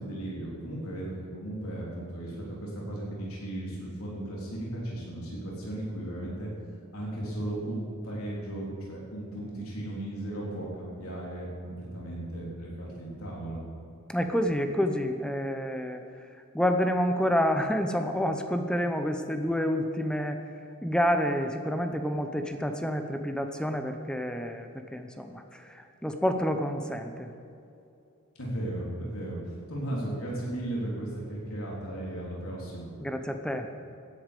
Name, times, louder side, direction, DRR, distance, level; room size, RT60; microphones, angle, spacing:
voice 1, 0.0-6.5 6.9-13.6 28.4-29.4 29.7-32.9, right 1 dB, 90° left, -4 dB, 3.6 m, -36 dB
voice 2, 14.1-16.0 16.5-20.4 20.8-27.3 33.0-33.7, equal, 5° left, 6 dB, 0.7 m, -28 dB
16.5 x 10.5 x 5.3 m, 2.6 s
head